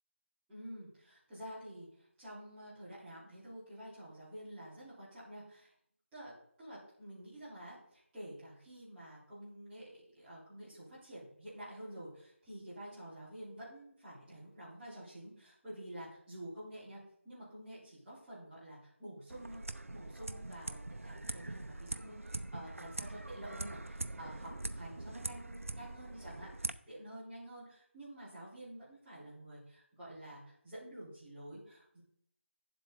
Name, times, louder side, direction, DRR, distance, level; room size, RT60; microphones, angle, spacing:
voice 1, 0.5-5.7 6.1-6.3 6.6-17.0 17.2-19.6 19.9-32.0, right 1 dB, 10° right, -13 dB, 3.9 m, -49 dB
sound 1, 19.3-26.7, right 2 dB, 90° right, 0.7 m, -43 dB
11.0 x 7.7 x 3.9 m, 0.67 s
figure-of-eight pair, 170°, 7 cm